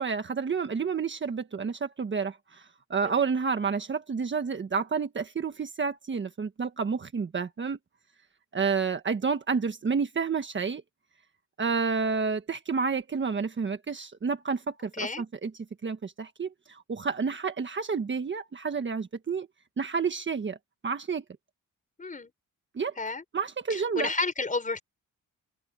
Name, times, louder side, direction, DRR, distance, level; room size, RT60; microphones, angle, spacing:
voice 1, 0.0-2.6 2.9-7.8 8.5-10.8 11.6-15.5 15.8-19.5 19.8-20.6 20.8-21.2 22.7-22.9 23.3-24.1, right 5 dB, 35° right, 1.5 m, -30 dB
voice 2, 14.9-15.2 22.0-22.3 23.0-23.2 23.7-24.8, left 3 dB, 25° left, 5.0 m, -31 dB
open air
cardioid pair, 125°, 33 cm